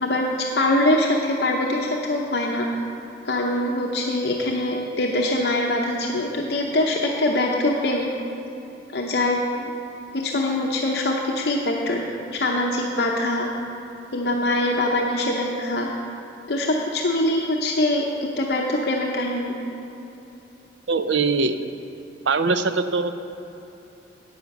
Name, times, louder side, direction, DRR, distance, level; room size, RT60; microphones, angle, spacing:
voice 1, 0.0-2.7 3.2-8.1 8.9-9.7 10.1-12.0 12.3-13.5 14.1-15.9 16.5-18.1 18.4-19.5, left 1 dB, 60° left, -1 dB, 0.8 m, -23 dB
voice 2, 20.9-21.6 22.3-23.2, right 4 dB, 85° right, 10 dB, 0.6 m, -22 dB
9.4 x 8.5 x 6.0 m, 2.9 s
head